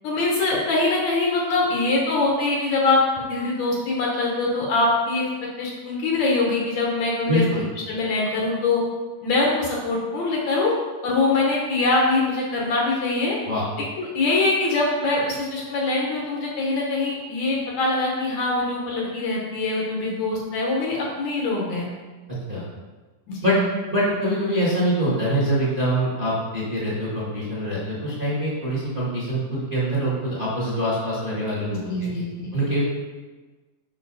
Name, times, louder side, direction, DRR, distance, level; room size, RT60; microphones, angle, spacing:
voice 1, 0.0-5.3 5.6-7.4 7.9-8.8 9.2-10.7 11.0-13.4 14.0-21.9 23.3-23.6 31.7-32.5, left 3 dB, 65° left, -3 dB, 2.1 m, -23 dB
voice 2, 7.3-7.7 13.4-13.6 22.5-22.6 23.4-23.5 23.9-32.1 32.5-32.8, equal, 20° right, -8 dB, 1.4 m, -24 dB
6.9 x 5.7 x 4.0 m, 1.3 s
omnidirectional pair, 3.8 m